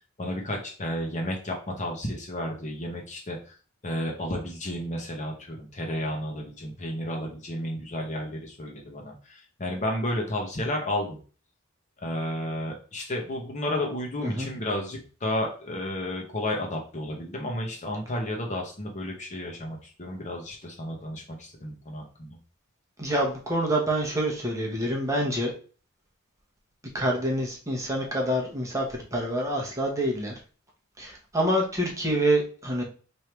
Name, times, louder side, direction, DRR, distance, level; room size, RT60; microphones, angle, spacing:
voice 1, 0.2-3.5 3.8-11.2 12.0-22.4, left 1 dB, 35° left, 1 dB, 0.8 m, -32 dB
voice 2, 23.0-25.5 26.9-30.3 31.0-32.8, right 1 dB, 15° right, -1 dB, 0.9 m, -27 dB
3.3 x 2.7 x 4.4 m, 0.39 s
head